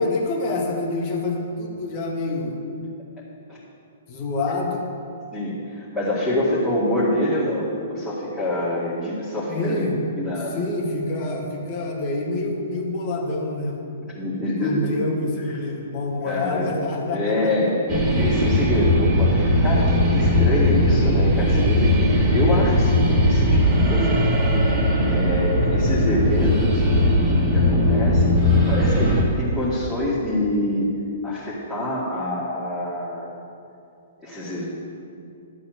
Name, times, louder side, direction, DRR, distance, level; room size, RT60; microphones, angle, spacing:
voice 1, 0.0-2.6 4.1-4.8 9.5-10.0 10.5-13.8 14.6-17.5, left 2 dB, 40° left, -2 dB, 1.9 m, -27 dB
voice 2, 5.3-10.6 14.2-14.9 15.4-15.6 16.2-16.7 17.1-26.8 27.5-30.9 31.2-33.3 34.2-34.7, left 1 dB, 5° left, -12 dB, 2.3 m, -26 dB
sound 1, 17.9-29.2, left 1 dB, 25° right, 1.9 m, -19 dB
11.5 x 4.2 x 8.0 m, 2.6 s
figure-of-eight pair, 115°, 0 cm